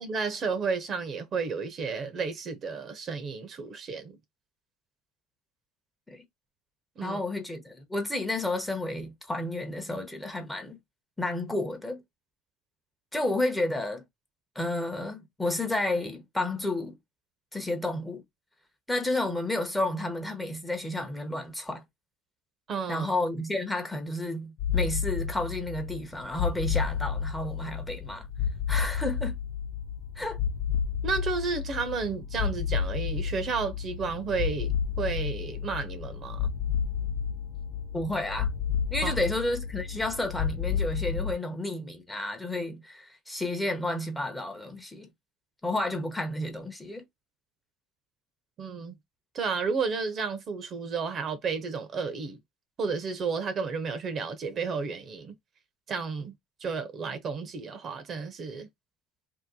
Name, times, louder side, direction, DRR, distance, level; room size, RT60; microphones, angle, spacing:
voice 1, 0.0-4.2 7.0-7.2 22.7-23.1 31.0-36.5 39.0-39.1 48.6-49.0 49.3-52.4 52.8-55.3 55.9-56.3 56.6-58.7, right 5 dB, 45° right, 0.8 m, -32 dB
voice 2, 7.0-10.8 11.2-12.0 13.1-14.0 14.5-17.0 17.5-18.2 18.9-21.8 22.9-28.3 28.7-29.4 30.2-30.4 37.9-38.5 38.9-45.1 45.6-47.0, left 2 dB, 10° left, 0.9 m, -31 dB
sound 1, 24.6-41.3, left 7 dB, 60° left, 0.7 m, -31 dB
2.8 x 2.1 x 3.7 m
supercardioid pair, 85°, 0 cm